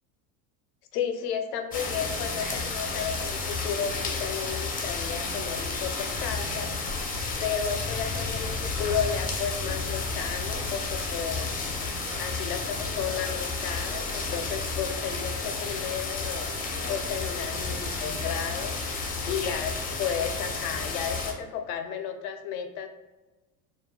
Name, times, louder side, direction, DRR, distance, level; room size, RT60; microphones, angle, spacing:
voice 1, 0.9-6.8 7.4-11.5 12.2-18.8 19.2-22.9, left 7 dB, 80° left, 7 dB, 0.6 m, -33 dB
sound 1, 1.7-21.3, left 3 dB, 20° left, 0.4 m, -31 dB
sound 2, 10.3-17.4, right 2 dB, 85° right, 1.0 m, -49 dB
2.3 x 2.1 x 3.2 m, 1.1 s
supercardioid pair, 100°, 44 cm